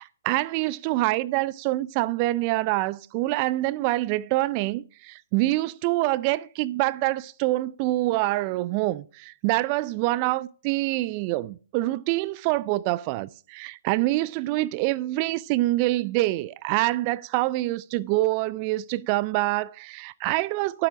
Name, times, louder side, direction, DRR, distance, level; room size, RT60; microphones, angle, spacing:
voice 1, 0.0-20.9, right 18 dB, 35° right, 0.4 m, -26 dB
12.5 x 7.6 x 4.8 m
figure-of-eight pair, 130°, 0 cm